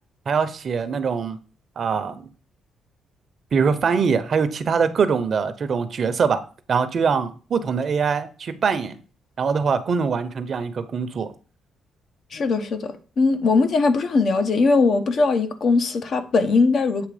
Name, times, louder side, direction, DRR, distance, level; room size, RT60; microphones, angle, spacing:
voice 1, 0.3-1.4 1.8-2.2 3.5-6.4 6.7-9.0 9.4-11.3, right 5 dB, 50° right, 0.8 m, -23 dB
voice 2, 12.3-17.1, left 4 dB, 55° left, 0.9 m, -20 dB
8.5 x 2.9 x 5.0 m
cardioid pair, 90°, 0 cm